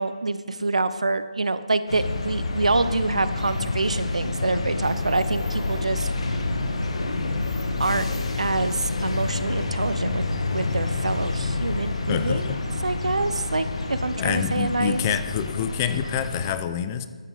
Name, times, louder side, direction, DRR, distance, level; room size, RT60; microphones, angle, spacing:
voice 1, 0.0-6.1 7.8-8.0 8.4-10.2 10.5-12.5 12.8-15.0, right 3 dB, 75° right, 13 dB, 0.7 m, -26 dB
sound 1, 1.9-16.5, left 3 dB, 60° left, 1.3 m, -28 dB
voice 2, 12.1-12.6 14.2-17.1, left 9 dB, 25° left, 11 dB, 0.5 m, -27 dB
13.0 x 9.6 x 3.9 m, 1.5 s
figure-of-eight pair, 145°, 4 cm